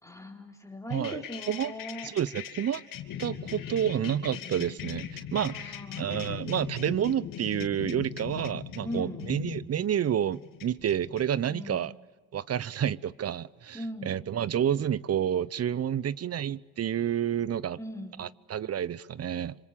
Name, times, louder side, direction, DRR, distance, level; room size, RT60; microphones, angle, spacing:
voice 1, 0.0-2.1 5.4-6.1 8.8-9.3 11.4-11.9 13.7-14.1 17.8-18.1, left 1 dB, 10° left, 4.3 m, -39 dB
sound 1, 0.9-11.5, left 9 dB, 60° left, 2.8 m, -40 dB
voice 2, 0.9-1.7 2.0-2.8 3.2-11.9 12.3-17.8 18.2-19.6, right 9 dB, 40° right, 0.9 m, -29 dB
27.0 x 26.0 x 8.5 m
supercardioid pair, 75°, 38 cm